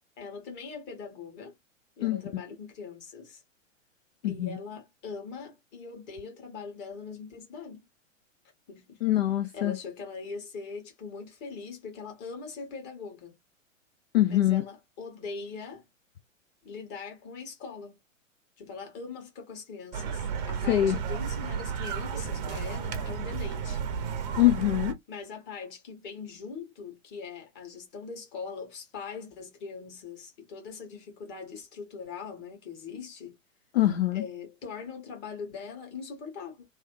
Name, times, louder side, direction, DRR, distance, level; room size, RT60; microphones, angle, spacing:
voice 1, 0.2-1.6 2.0-3.4 4.2-7.9 8.7-9.0 9.5-13.3 14.3-15.8 16.6-18.0 18.6-23.8 25.1-33.4 34.1-36.6, left 5 dB, 25° left, 1.6 m, -41 dB
voice 2, 4.2-4.6 9.0-9.8 14.1-14.6 20.7-21.0 24.4-25.0 33.7-34.2, left 14 dB, 55° left, 0.5 m, -24 dB
sound 1, 19.9-24.9, right 6 dB, 35° right, 0.7 m, -33 dB
3.1 x 2.8 x 3.0 m
figure-of-eight pair, 110°, 39 cm